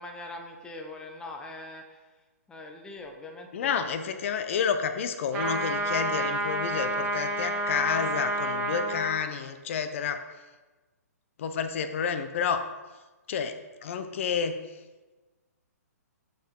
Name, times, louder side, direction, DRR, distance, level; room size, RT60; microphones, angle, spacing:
voice 1, 0.0-2.0 2.5-4.0, left 2 dB, 10° left, 3 dB, 0.8 m, -42 dB
voice 2, 3.5-10.2 11.4-12.7 13.3-14.6, left 7 dB, 50° left, 9 dB, 0.7 m, -30 dB
sound 1, 5.3-9.2, right 1 dB, 15° right, 1.5 m, -29 dB
8.9 x 4.9 x 3.7 m, 1.2 s
hypercardioid pair, 145°, 9 cm